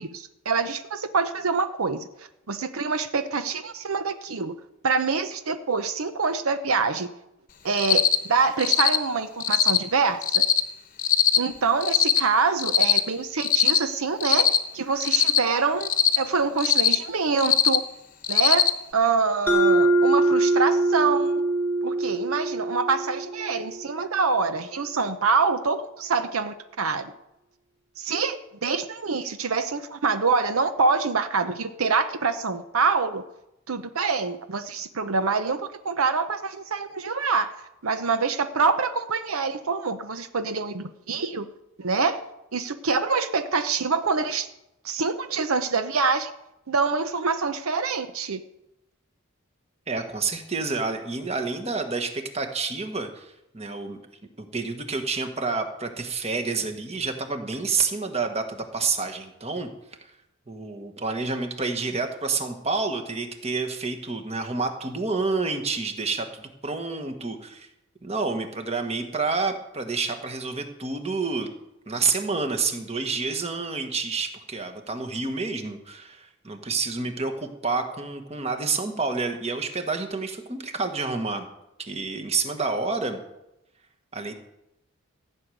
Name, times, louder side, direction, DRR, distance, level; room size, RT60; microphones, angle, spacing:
voice 1, 0.0-4.5 4.8-7.1 7.6-8.0 8.3-10.4 11.4-14.5 14.7-15.9 16.2-17.8 18.3-18.7 18.9-21.4 21.8-27.1 28.0-28.4 28.6-33.2 33.7-37.5 37.8-41.5 41.8-42.2 42.5-44.5 44.8-46.3 46.7-48.4, right 4 dB, 80° right, 10 dB, 0.8 m, -25 dB
Cricket, 7.8-8.2 8.6-9.0 9.4-9.8 10.2-10.6 11.0-11.4 11.8-12.2 12.6-13.0 13.4-13.8 14.2-14.6 15.0-15.4 15.8-16.2 16.6-16.9 17.4-17.8 18.2-18.7, left 8 dB, 40° left, 1.0 m, -20 dB
Mallet percussion, 19.5-24.0, right 2 dB, 5° left, 1.6 m, -23 dB
voice 2, 49.9-54.0 54.4-59.7 60.0-60.1 60.5-67.7 68.0-71.5 71.9-81.4 81.8-83.2 84.1-84.3, right 4 dB, 30° right, 6 dB, 1.4 m, -29 dB
15.0 x 6.4 x 9.2 m, 0.88 s
head